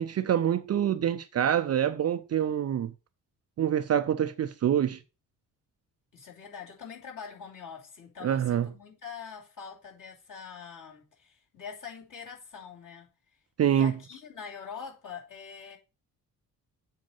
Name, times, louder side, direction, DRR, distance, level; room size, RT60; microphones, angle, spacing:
voice 1, 0.0-2.9 3.6-5.0 8.2-8.7 13.6-13.9, right 9 dB, 35° right, 0.6 m, -26 dB
voice 2, 6.1-13.1 13.6-15.8, left 6 dB, 40° left, 2.8 m, -44 dB
7.5 x 4.4 x 5.5 m
figure-of-eight pair, 40°, 48 cm